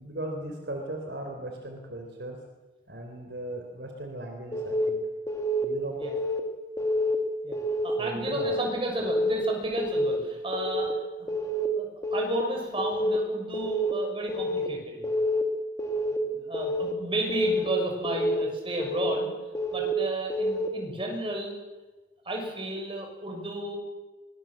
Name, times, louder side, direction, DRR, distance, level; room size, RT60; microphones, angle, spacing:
voice 1, 0.0-2.4 2.9-5.0 5.6-5.9 8.0-8.5, right 1 dB, 65° right, 3 dB, 3.9 m, -37 dB
Keyboard (musical) / Alarm, 4.5-4.9 5.3-5.6 6.0-6.4 6.8-7.2 7.5-7.9 8.3-8.7 9.0-9.4 9.8-10.2 10.5-10.9 11.3-11.7 12.0-12.4 12.8-13.2 13.5-13.9 14.3-14.7 15.0-15.4 15.8-16.2 16.5-16.9 17.3-17.7 18.0-18.4 18.8-19.2 19.5-19.9 20.3-20.7, equal, 20° left, 2.3 m, -28 dB
voice 2, 7.4-11.3 11.8-15.0 15.9-19.3 19.7-21.5 22.2-23.8, right 1 dB, 30° right, 1 dB, 6.7 m, -33 dB
23.5 x 22.0 x 7.6 m, 1.2 s
head